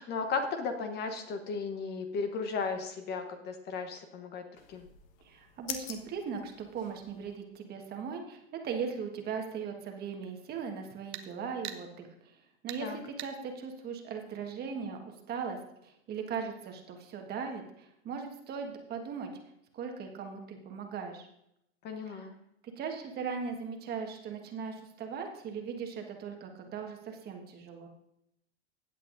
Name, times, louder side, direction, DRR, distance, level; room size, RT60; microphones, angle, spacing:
voice 1, 0.0-4.4 4.7-4.8 12.8-13.0 21.8-22.3, left 4 dB, 30° left, 6 dB, 1.0 m, -35 dB
sound 1, 4.6-7.4, left 9 dB, 55° left, 1.3 m, -45 dB
voice 2, 5.2-15.0 15.3-19.3 19.7-21.3 22.1-22.2 22.8-27.9, right 6 dB, 30° right, 3 dB, 1.5 m, -39 dB
sound 2, 11.1-11.3 11.6-11.8 12.7-12.8 13.2-13.3, right 11 dB, 75° right, 1.0 m, -40 dB
16.0 x 8.4 x 2.6 m, 0.78 s
hypercardioid pair, 125°, 34 cm